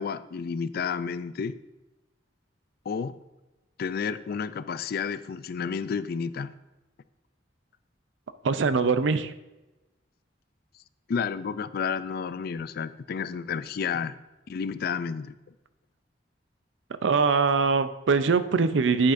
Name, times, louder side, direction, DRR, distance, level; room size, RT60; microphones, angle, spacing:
voice 1, 0.0-1.6 2.9-3.2 3.8-6.5 11.1-14.2 14.5-15.3, left 6 dB, 55° left, 14 dB, 0.4 m, -31 dB
voice 2, 8.4-9.3 17.0-19.1, right 4 dB, 80° right, 12 dB, 0.5 m, -22 dB
10.0 x 8.4 x 2.6 m, 1.1 s
head